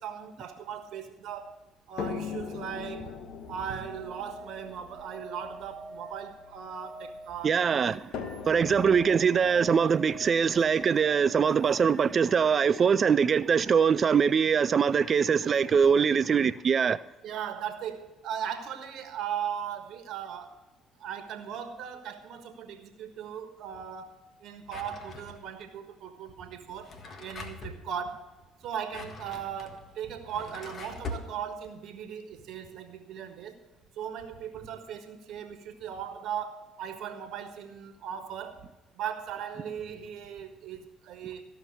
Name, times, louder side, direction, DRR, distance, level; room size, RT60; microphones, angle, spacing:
voice 1, 0.0-1.5 1.9-7.7 17.2-20.6 21.0-26.9 27.2-28.3 28.6-33.6 33.9-38.7 39.0-41.4, right 8 dB, 65° right, 1.3 m, -38 dB
sound 1, 2.0-7.2 8.1-12.1 13.1-13.2 13.6-13.7, left 6 dB, 65° left, 1.3 m, -42 dB
sound 2, 3.4-13.2 15.5-15.6, right 1 dB, 15° right, 2.1 m, -47 dB
voice 2, 7.4-8.0 8.5-17.0, right 6 dB, 45° right, 0.3 m, -23 dB
Drawer open or close, 24.7-25.6 26.7-27.8 28.7-31.3, left 3 dB, 50° left, 1.7 m, -42 dB
14.5 x 5.8 x 7.1 m
hypercardioid pair, 65°, 0 cm